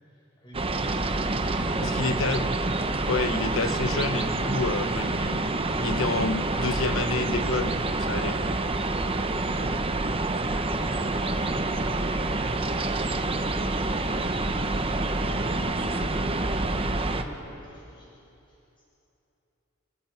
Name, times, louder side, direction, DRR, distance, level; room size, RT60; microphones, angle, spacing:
voice 1, 0.1-0.9 1.6-2.4 9.5-9.8 10.7-12.4 13.7-14.1 15.1-16.1 16.4-18.1 18.5-18.6, left 1 dB, 25° left, -6 dB, 6.9 m, -46 dB
sound 1, 0.5-17.2, right 2 dB, 25° right, 0.9 m, -27 dB
voice 2, 1.8-2.4 3.0-5.4 5.8-8.4, left 3 dB, 70° left, 10 dB, 1.0 m, -29 dB
29.0 x 16.5 x 5.9 m, 2.9 s
head